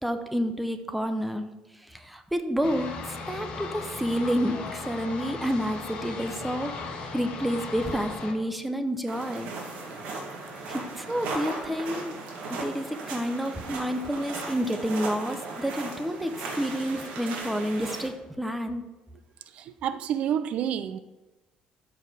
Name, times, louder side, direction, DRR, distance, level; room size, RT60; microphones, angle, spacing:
voice 1, 0.0-1.5 1.8-6.7 7.1-9.6 10.7-12.2 12.5-18.8, equal, ahead, 0.6 m, -29 dB
sound 1, 2.6-8.3, left 4 dB, 45° left, 1.5 m, -37 dB
sound 2, 9.1-18.1, right 3 dB, 80° right, 2.1 m, -37 dB
voice 2, 19.5-21.0, right 9 dB, 55° right, 0.4 m, -29 dB
13.0 x 4.7 x 4.9 m
cardioid pair, 170°, 3 cm